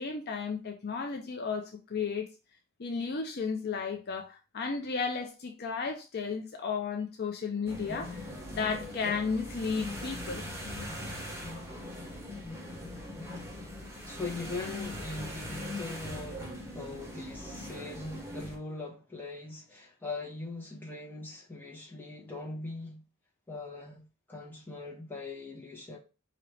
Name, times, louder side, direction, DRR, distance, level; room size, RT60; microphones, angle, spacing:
voice 1, 0.0-2.3 2.8-8.2 8.5-10.4, left 5 dB, 50° left, 0.6 m, -33 dB
sound 1, 7.7-18.6, left 1 dB, 15° right, 1.2 m, -40 dB
voice 2, 14.0-23.0 23.5-26.0, left 3 dB, 10° left, 1.3 m, -41 dB
4.9 x 2.9 x 3.3 m
head